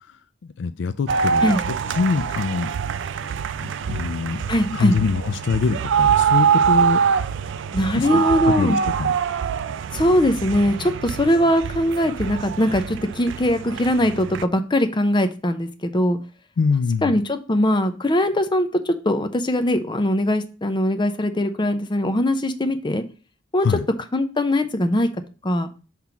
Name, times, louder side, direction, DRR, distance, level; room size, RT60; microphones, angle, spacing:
voice 1, 0.6-2.7 3.6-4.4 4.7-7.0 8.0-9.1 16.6-17.1 23.6-23.9, left 5 dB, 65° left, 12 dB, 0.4 m, -24 dB
sound 1, 1.1-14.5, right 7 dB, 70° right, 0.4 m, -24 dB
voice 2, 4.5-5.0 7.7-8.8 9.9-16.2 17.0-23.0 23.5-23.7 24.1-25.1 25.4-25.7, left 1 dB, 25° left, 8 dB, 0.6 m, -21 dB
5.9 x 3.6 x 5.7 m, 0.35 s
head